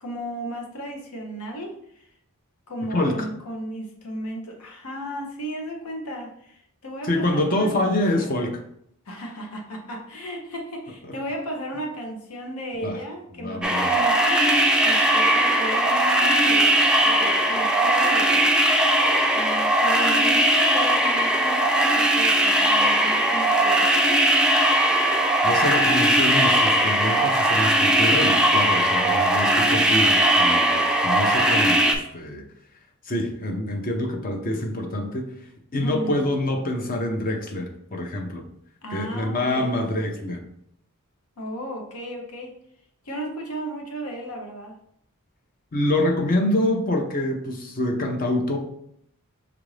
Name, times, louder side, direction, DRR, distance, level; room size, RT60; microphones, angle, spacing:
voice 1, 0.0-2.1 2.7-8.4 9.1-18.5 19.3-24.2 35.8-36.3 38.8-39.7 41.4-42.5 43.0-44.7, equal, 80° left, 2 dB, 0.9 m, -35 dB
voice 2, 7.0-8.6 12.8-13.0 13.4-13.9 25.4-32.4 33.0-35.3 35.7-38.4 38.9-40.4 45.7-48.6, left 1 dB, 40° left, 3 dB, 0.6 m, -26 dB
sound 1, 13.6-31.9, right 1 dB, 5° right, 0.3 m, -19 dB
5.8 x 2.5 x 3.2 m, 0.71 s
head